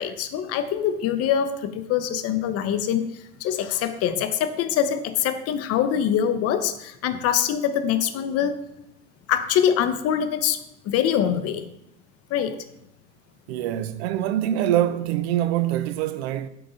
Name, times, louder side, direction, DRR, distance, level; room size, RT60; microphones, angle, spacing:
voice 1, 0.0-8.6 9.3-11.6 12.3-12.6, left 9 dB, 45° left, 0.7 m, -24 dB
voice 2, 13.5-16.5, right 12 dB, 65° right, 0.6 m, -24 dB
7.7 x 3.8 x 4.0 m
hypercardioid pair, 80°, 35 cm